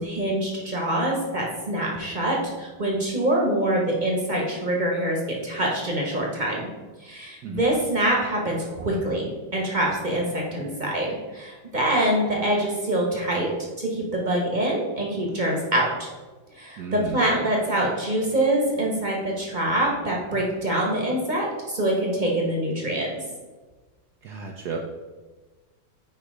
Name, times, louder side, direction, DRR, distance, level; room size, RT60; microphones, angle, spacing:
voice 1, 0.0-6.7 7.0-16.1 16.5-23.1, right 1 dB, 30° right, -2 dB, 1.1 m, -25 dB
voice 2, 16.8-17.3 24.2-24.8, right 6 dB, 70° right, 2 dB, 1.0 m, -33 dB
9.3 x 3.2 x 4.8 m, 1.3 s
omnidirectional pair, 2.2 m